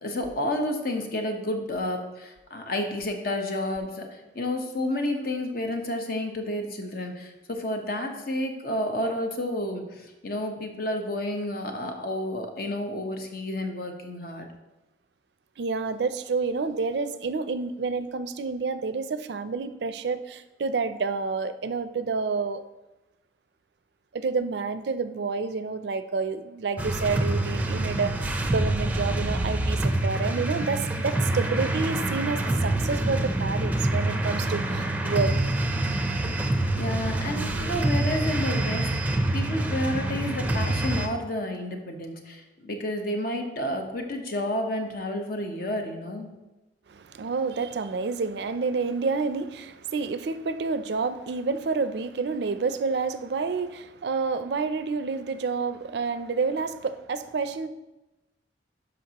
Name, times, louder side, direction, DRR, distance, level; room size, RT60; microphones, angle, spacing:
voice 1, 0.0-14.5 36.7-46.3, left 1 dB, 55° left, 1.0 m, -30 dB
voice 2, 15.6-22.6 24.1-35.3 46.9-57.7, right 4 dB, 65° right, 0.4 m, -29 dB
sound 1, 26.8-41.1, right 2 dB, 10° right, 0.5 m, -26 dB
12.0 x 5.3 x 2.9 m
head